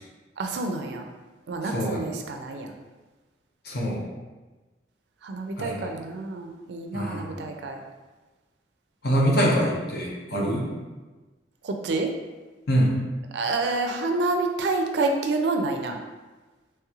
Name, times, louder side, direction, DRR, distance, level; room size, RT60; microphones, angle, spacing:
voice 1, 0.4-1.0 1.5-2.7 5.2-7.8 10.3-10.5 11.6-12.1 13.3-16.0, right 3 dB, 65° right, 4 dB, 0.4 m, -28 dB
voice 2, 1.7-2.0 3.6-4.0 5.6-5.8 6.9-7.4 9.0-10.7 12.7-13.0, equal, 60° left, -2 dB, 0.7 m, -24 dB
3.2 x 3.0 x 2.3 m, 1.2 s
head